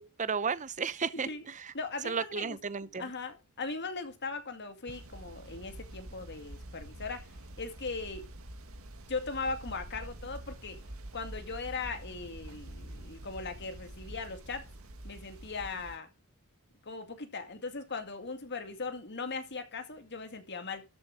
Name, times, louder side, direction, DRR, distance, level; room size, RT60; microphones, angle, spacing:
voice 1, 0.2-1.3 2.0-3.0, right 5 dB, 35° right, 0.7 m, -33 dB
voice 2, 1.1-1.4 1.7-2.6 3.0-7.3 7.6-8.3 9.1-10.8 11.1-14.7 15.0-16.1 16.9-20.8, left 4 dB, 50° left, 2.2 m, -39 dB
sound 1, 4.9-16.0, right 1 dB, 70° right, 1.9 m, -46 dB
13.0 x 7.2 x 4.9 m
head